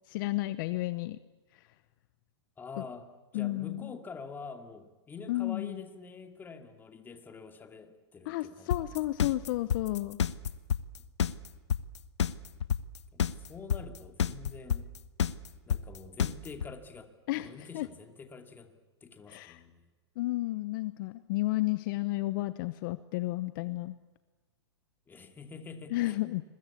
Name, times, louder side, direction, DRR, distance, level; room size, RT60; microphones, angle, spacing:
voice 1, 0.1-1.2 2.8-2.9 3.3-3.9 5.3-5.8 8.3-10.2 17.3-17.9 19.3-19.6 20.2-23.9 25.9-26.4, left 18 dB, 50° left, 14 dB, 0.9 m, -32 dB
voice 2, 2.6-3.1 3.3-9.4 11.0-11.1 13.1-14.9 15.7-17.2 17.4-18.7 19.0-19.9 25.1-26.4, left 5 dB, 15° left, 6 dB, 2.5 m, -46 dB
sound 1, 8.7-16.7, left 8 dB, 85° left, 1.1 m, -28 dB
29.0 x 21.5 x 8.5 m, 1.3 s
hypercardioid pair, 135°, 14 cm